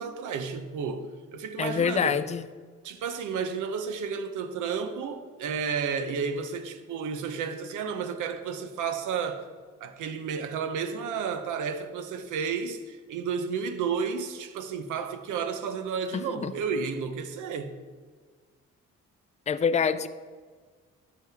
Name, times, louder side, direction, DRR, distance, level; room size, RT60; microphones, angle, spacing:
voice 1, 0.0-2.2 2.8-9.4 9.8-17.8, right 6 dB, 85° right, 0.8 m, -32 dB
voice 2, 1.6-2.4 16.1-16.5 19.5-20.1, left 6 dB, 25° left, 0.4 m, -26 dB
11.5 x 6.2 x 3.5 m
cardioid pair, 90°, 30 cm